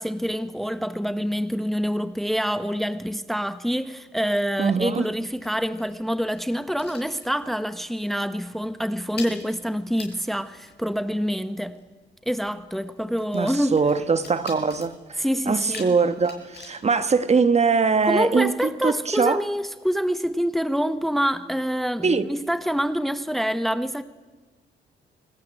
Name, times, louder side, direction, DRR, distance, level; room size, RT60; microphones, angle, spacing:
voice 1, 0.0-11.8 12.2-13.8 15.2-15.9 18.0-24.0, equal, ahead, 1.1 m, -26 dB
sound 1, 4.4-7.7 8.0-8.3 8.5-17.9, left 5 dB, 55° left, 6.4 m, -46 dB
voice 2, 4.6-5.0 13.3-19.4 22.0-22.3, right 5 dB, 35° right, 1.3 m, -22 dB
25.5 x 19.0 x 9.0 m
cardioid pair, 90°, 20 cm